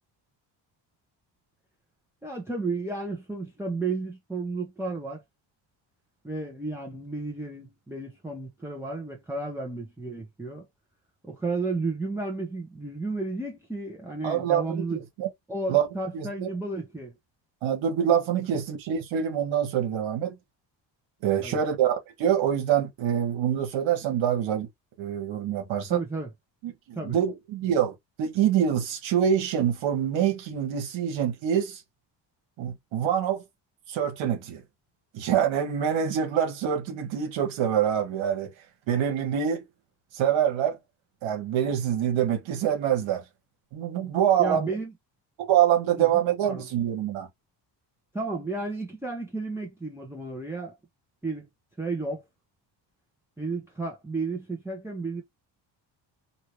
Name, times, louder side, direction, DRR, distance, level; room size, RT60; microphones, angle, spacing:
voice 1, 2.2-5.2 6.2-10.7 11.2-15.0 15.5-17.2 21.4-21.6 25.9-26.3 27.0-27.1 44.4-44.9 46.0-46.7 48.1-50.8 51.2-51.5 51.8-52.2 53.4-55.2, right 3 dB, 5° right, 1.0 m, -33 dB
voice 2, 14.2-15.3 15.7-15.9 16.1-16.5 17.6-20.3 21.2-24.7 25.0-26.0 26.6-31.8 32.6-33.4 33.9-34.6 35.1-38.5 38.9-39.6 40.1-40.8 41.2-43.2 43.7-44.7 45.4-47.3, right 9 dB, 90° right, 1.3 m, -25 dB
2.8 x 2.8 x 3.1 m
cardioid pair, 90°, 46 cm